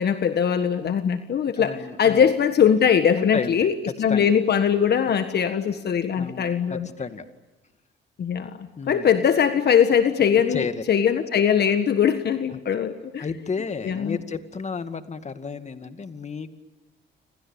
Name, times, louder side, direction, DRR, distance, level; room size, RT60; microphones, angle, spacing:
voice 1, 0.0-6.9 8.2-13.2 13.8-14.2, left 7 dB, 55° left, 9 dB, 1.6 m, -21 dB
voice 2, 1.6-2.3 3.1-3.7 4.1-4.3 6.2-7.2 8.8-9.1 10.5-10.8 12.5-12.6 13.2-16.6, left 5 dB, 35° left, 9 dB, 2.2 m, -32 dB
29.5 x 27.0 x 7.2 m, 1.1 s
cardioid pair, 90°, 20 cm